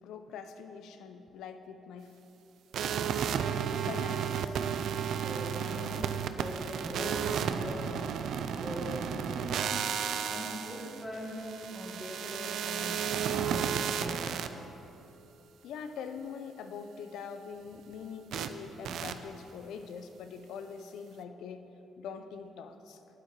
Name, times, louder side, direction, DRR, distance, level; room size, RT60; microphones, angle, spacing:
voice 1, 0.0-2.1 3.8-4.6 15.6-21.7 22.0-23.0, left 6 dB, 85° left, 8 dB, 0.6 m, -43 dB
sound 1, 2.7-14.5 18.3-18.5 18.8-19.1, right 8 dB, 75° right, 0.4 m, -33 dB
voice 2, 5.2-8.2 8.6-9.7 10.3-14.2, equal, 10° left, -5 dB, 1.9 m, -41 dB
8.9 x 8.7 x 4.7 m, 2.9 s
cardioid pair, 90°, 0 cm